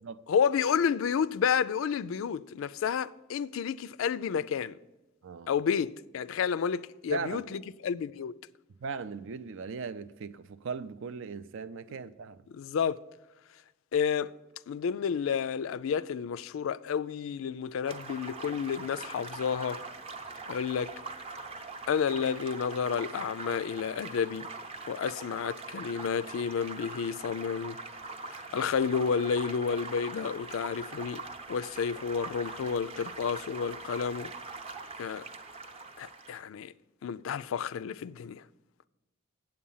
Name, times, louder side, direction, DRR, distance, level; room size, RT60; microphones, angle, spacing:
voice 1, 0.3-4.8 5.5-8.3 12.5-13.0 13.9-14.3 14.7-19.8 20.5-20.9 21.9-24.5 24.9-27.8 28.5-31.2 31.5-34.3 35.0-35.3 36.0-36.7 37.0-38.4, left 7 dB, 70° left, 0.3 m, -30 dB
voice 2, 7.1-7.5 8.8-12.4, right 5 dB, 65° right, 0.5 m, -38 dB
sound 1, 17.9-36.4, right 3 dB, 30° right, 0.7 m, -42 dB
8.6 x 7.7 x 5.5 m
head